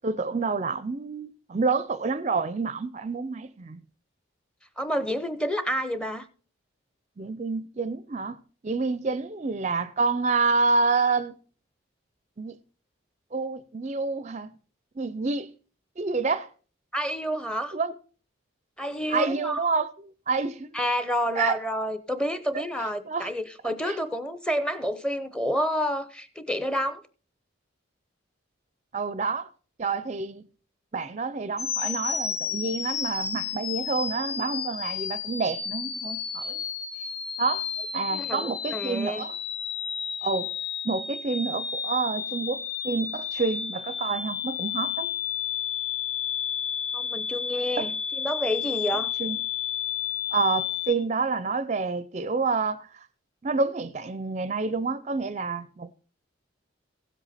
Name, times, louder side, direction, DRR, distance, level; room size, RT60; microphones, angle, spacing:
voice 1, 0.0-3.8 7.2-8.4 8.6-11.4 12.4-12.6 13.3-14.5 15.0-15.5 16.0-16.5 17.7-17.9 19.1-20.8 21.3-21.6 22.8-23.3 23.8-24.0 28.9-29.5 29.8-30.4 30.9-36.6 37.4-37.7 37.9-39.4 40.2-40.5 40.8-45.1 47.8-47.9 49.2-49.4 50.3-53.1 53.4-55.9, right 4 dB, 35° right, 0.5 m, -28 dB
voice 2, 4.8-6.3 16.9-17.7 18.8-19.6 20.7-27.0 38.2-39.2 46.9-49.1, equal, 5° left, 0.7 m, -29 dB
sound 1, 31.6-50.9, left 8 dB, 55° left, 1.4 m, -32 dB
16.0 x 7.9 x 4.2 m
head